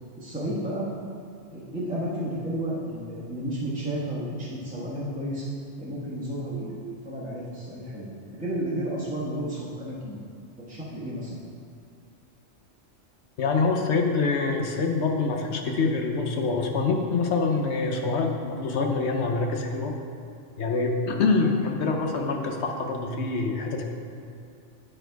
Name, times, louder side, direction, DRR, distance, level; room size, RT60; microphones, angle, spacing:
voice 1, 0.2-0.8 1.5-5.5 5.8-10.2 10.6-11.4, right 1 dB, 5° right, -9 dB, 1.2 m, -32 dB
voice 2, 13.4-19.9 20.6-23.8, left 4 dB, 65° left, 2 dB, 1.0 m, -25 dB
9.2 x 4.4 x 4.6 m, 2.5 s
omnidirectional pair, 1.3 m